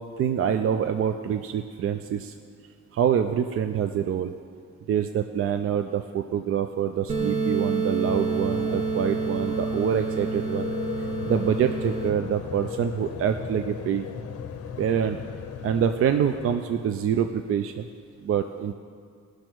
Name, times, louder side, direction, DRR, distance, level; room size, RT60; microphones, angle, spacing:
voice 1, 0.0-2.3 2.9-4.3 4.9-10.7 11.2-14.1 14.8-15.2 15.6-17.9 18.2-18.7, right 8 dB, 50° right, 7 dB, 0.4 m, -26 dB
sound 1, 7.1-12.1, right 4 dB, 25° right, 0.8 m, -28 dB
sound 2, 8.0-17.0, left 8 dB, 55° left, 0.6 m, -37 dB
18.5 x 6.3 x 4.5 m, 2.1 s
wide cardioid pair, 175°, 29 cm